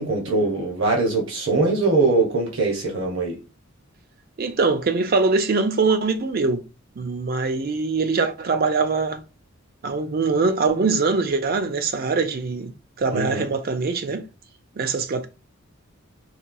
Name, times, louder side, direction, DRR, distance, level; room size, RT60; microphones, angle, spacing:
voice 1, 0.0-3.4 13.1-13.5, right 3 dB, 65° right, 1.0 m, -22 dB
voice 2, 4.4-6.6 7.0-9.2 9.8-12.7 13.0-14.2 14.8-15.3, right 4 dB, 45° right, 0.4 m, -22 dB
4.2 x 2.3 x 2.6 m
head